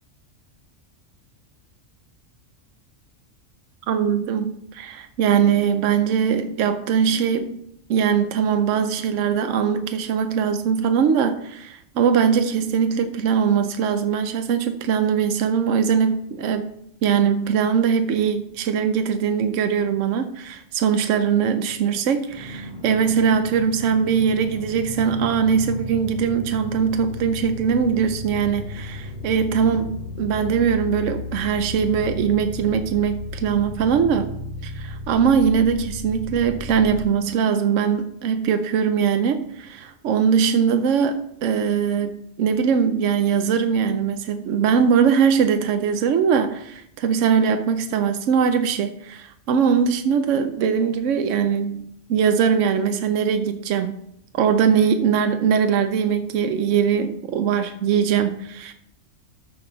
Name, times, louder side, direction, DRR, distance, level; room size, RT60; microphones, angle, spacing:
voice 1, 3.9-7.6 7.9-16.7 17.0-34.3 34.6-54.0 54.3-58.7, right 7 dB, 80° right, 8 dB, 1.0 m, -21 dB
sound 1, 22.3-37.0, left 2 dB, 35° left, 2.5 m, -34 dB
13.5 x 5.5 x 3.9 m, 0.75 s
omnidirectional pair, 1.3 m